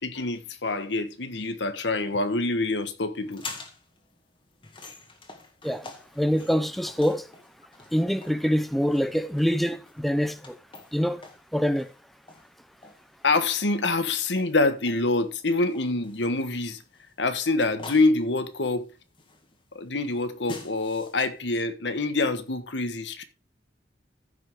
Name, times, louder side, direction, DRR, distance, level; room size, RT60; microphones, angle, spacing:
voice 1, 0.0-3.4 13.2-16.8 17.2-18.9 19.7-23.2, left 2 dB, 85° left, 1.4 m, -26 dB
sound 1, 3.2-21.4, left 3 dB, 30° left, 1.9 m, -47 dB
voice 2, 6.2-7.3 7.9-10.6 10.9-11.2 11.5-11.9, equal, ahead, 0.6 m, -25 dB
14.5 x 6.0 x 3.6 m
head